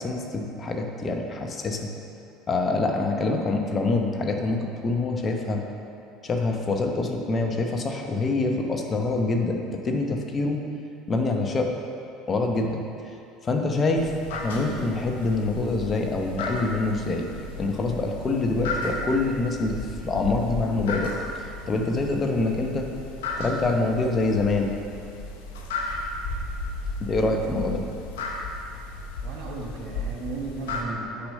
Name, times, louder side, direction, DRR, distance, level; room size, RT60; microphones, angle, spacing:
voice 1, 0.0-1.9 2.5-5.6 6.2-9.6 9.8-10.6 11.1-11.7 12.3-13.2 13.4-17.3 17.6-19.8 20.0-21.1 21.4-22.9 23.4-24.8 27.0-27.8, left 3 dB, 35° left, 2 dB, 0.9 m, -25 dB
sound 1, 14.0-30.8, left 2 dB, 80° left, 0.8 m, -34 dB
voice 2, 29.2-31.3, right 3 dB, 60° right, -1 dB, 1.5 m, -35 dB
6.2 x 4.9 x 6.6 m, 2.6 s
hypercardioid pair, 75°, 0 cm